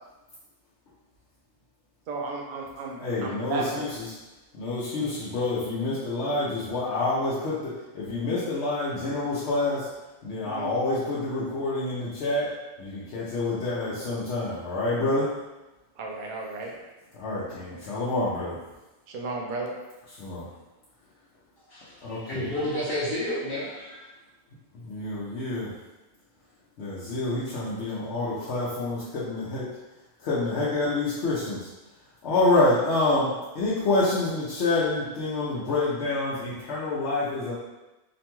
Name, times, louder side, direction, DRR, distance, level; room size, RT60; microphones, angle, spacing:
voice 1, 2.1-3.9 10.4-10.7 16.0-16.7 19.1-19.7, right 3 dB, 55° right, 0 dB, 0.6 m, -34 dB
voice 2, 3.0-4.1 4.5-9.9 10.2-12.5 12.8-15.3 17.1-18.6 20.2-20.5 22.0-22.5 24.7-25.7 26.8-29.7 30.2-31.7 32.2-37.5, left 2 dB, 85° left, -9 dB, 0.9 m, -27 dB
voice 3, 21.7-24.0, left 1 dB, 60° left, -10 dB, 0.9 m, -31 dB
2.9 x 2.2 x 2.9 m, 1.1 s
omnidirectional pair, 1.1 m